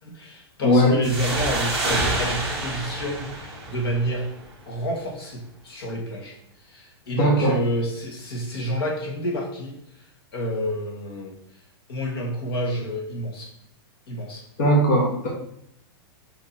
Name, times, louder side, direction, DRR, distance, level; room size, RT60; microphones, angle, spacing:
voice 1, 0.0-4.3 4.7-6.4 6.7-9.8 10.3-11.3 11.9-13.5 14.1-14.4, equal, 70° left, 0 dB, 1.9 m, -29 dB
voice 2, 0.6-1.1 7.1-7.6 14.6-15.3, equal, 40° left, -3 dB, 1.2 m, -19 dB
sound 1, 1.0-4.4, right 2 dB, 5° right, 1.6 m, -28 dB
5.2 x 4.3 x 4.3 m, 0.72 s
supercardioid pair, 170°, 13 cm